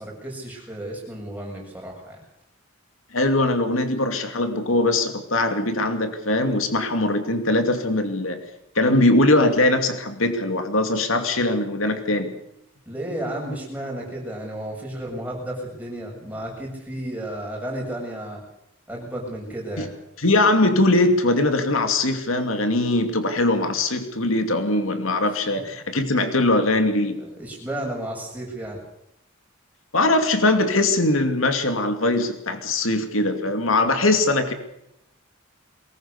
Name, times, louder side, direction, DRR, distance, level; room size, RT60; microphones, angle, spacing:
voice 1, 0.0-2.2 12.9-18.4 18.9-19.9 27.2-28.8, right 1 dB, 10° right, -1 dB, 7.5 m, -33 dB
voice 2, 3.1-8.4 8.7-12.3 19.8-19.9 20.2-27.2 29.9-34.5, left 2 dB, 80° left, 7 dB, 2.6 m, -21 dB
22.5 x 20.0 x 6.9 m, 0.79 s
head